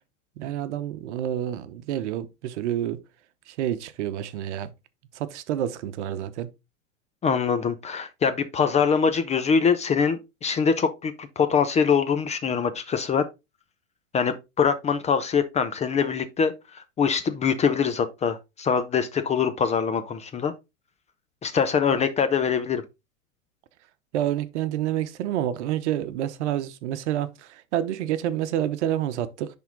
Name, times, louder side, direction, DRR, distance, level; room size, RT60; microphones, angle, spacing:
voice 1, 0.4-3.0 3.5-4.7 5.1-6.5 24.1-29.5, right 11 dB, 55° right, 1.0 m, -28 dB
voice 2, 7.2-13.3 14.1-20.5 21.4-22.8, left 6 dB, 15° left, 0.6 m, -23 dB
10.0 x 3.8 x 3.7 m
hypercardioid pair, 100°, 40 cm